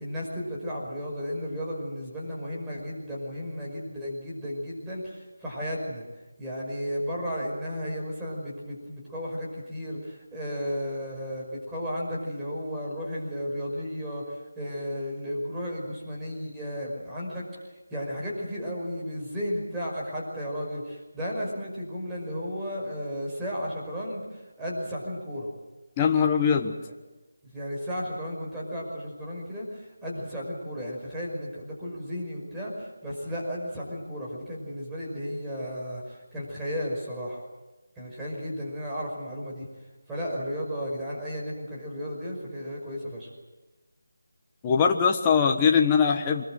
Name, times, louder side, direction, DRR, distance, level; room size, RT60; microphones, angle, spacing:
voice 1, 0.0-6.0 6.4-17.5 17.9-25.5 27.5-37.5 38.0-39.7 40.1-43.3, equal, 5° right, -6 dB, 5.6 m, -34 dB
voice 2, 26.0-26.8 44.6-46.5, left 6 dB, 15° left, 3 dB, 1.3 m, -21 dB
25.0 x 21.5 x 7.8 m, 1.1 s
figure-of-eight pair, 165°, 0 cm